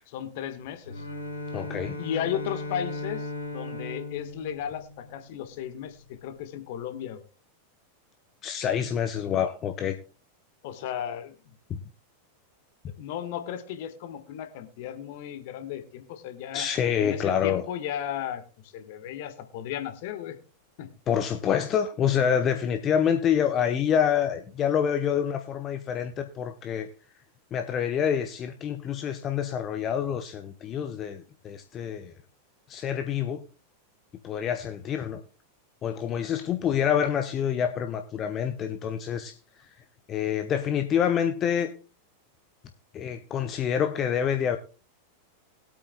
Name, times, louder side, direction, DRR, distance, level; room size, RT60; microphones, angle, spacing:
voice 1, 0.1-1.1 2.0-7.2 10.6-11.5 13.0-16.7 17.0-20.4 20.8-20.9, left 10 dB, 50° left, 1.4 m, -35 dB
Bowed string instrument, 0.8-5.5, left 2 dB, 75° left, 2.4 m, -37 dB
voice 2, 1.5-2.0 8.4-10.0 11.7-11.8 16.5-17.6 21.1-26.9 27.5-32.1 32.7-33.4 34.2-35.2 35.8-39.7 40.1-41.7 42.9-44.6, left 8 dB, 30° left, 0.8 m, -27 dB
21.0 x 8.5 x 2.2 m
figure-of-eight pair, 90°, 0 cm